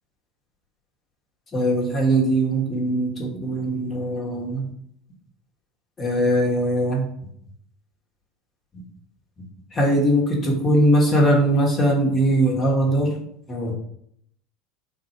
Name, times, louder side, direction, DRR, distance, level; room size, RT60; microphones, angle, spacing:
voice 1, 1.5-4.7 6.0-7.0 9.7-13.1 13.5-13.7, right 1 dB, 25° left, -1 dB, 1.4 m, -20 dB
4.2 x 2.7 x 4.4 m, 0.70 s
figure-of-eight pair, 75°, 0 cm